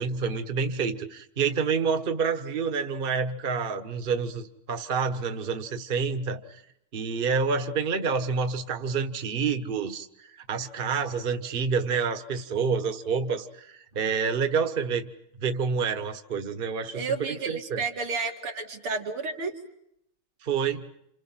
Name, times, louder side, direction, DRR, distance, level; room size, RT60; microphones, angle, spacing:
voice 1, 0.0-6.6 6.9-10.1 10.5-15.1 15.4-17.8 20.4-20.9, right 5 dB, 30° right, 8 dB, 1.3 m, -28 dB
voice 2, 16.9-19.5, right 4 dB, 85° right, 3 dB, 3.5 m, -31 dB
29.5 x 28.0 x 5.9 m, 0.77 s
omnidirectional pair, 2.3 m